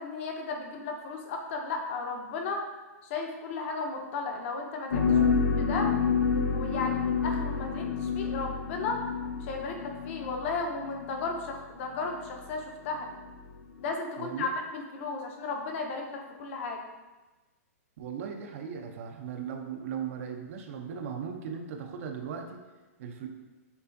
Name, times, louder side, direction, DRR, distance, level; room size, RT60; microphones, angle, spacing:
voice 1, 0.0-2.6 3.0-5.3 5.6-5.9 6.3-9.0 9.4-13.1 13.8-16.8, left 4 dB, 55° left, 2 dB, 0.7 m, -35 dB
sound 1, 4.9-11.3 12.0-12.2 13.0-13.2 13.8-13.9, left 5 dB, 90° left, 0.5 m, -28 dB
voice 2, 14.2-14.5 18.0-22.6 23.0-23.3, right 7 dB, 60° right, 4 dB, 0.5 m, -37 dB
6.8 x 2.4 x 2.6 m, 1.1 s
hypercardioid pair, 130°, 8 cm